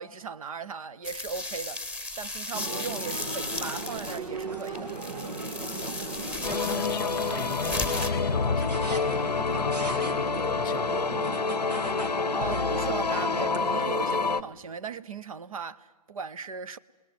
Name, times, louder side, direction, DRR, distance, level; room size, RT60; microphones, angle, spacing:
voice 1, 0.0-1.8 2.2-4.9 12.4-16.8, right 6 dB, 60° right, 0.9 m, -37 dB
sound 1, 1.0-8.1, left 2 dB, 5° right, 1.4 m, -35 dB
sound 2, 2.5-14.4, right 2 dB, 85° right, 2.8 m, -36 dB
sound 3, 6.4-14.4, left 4 dB, 90° left, 0.7 m, -28 dB
voice 2, 6.6-9.2 9.5-11.1, left 13 dB, 30° left, 0.8 m, -39 dB
29.0 x 19.5 x 9.4 m
figure-of-eight pair, 135°, 20 cm